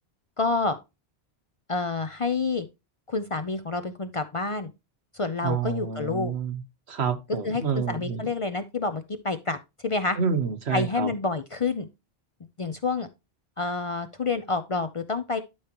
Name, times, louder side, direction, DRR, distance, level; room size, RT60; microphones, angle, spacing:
voice 1, 0.4-0.8 1.7-2.7 3.1-4.7 5.1-6.3 7.4-9.6 9.8-10.2 10.7-11.9 12.6-13.1 13.6-15.4, left 3 dB, 40° left, 0.5 m, -28 dB
voice 2, 5.4-6.6 6.9-8.3 10.2-11.1, right 6 dB, 80° right, 1.3 m, -28 dB
11.5 x 4.9 x 2.9 m
omnidirectional pair, 1.1 m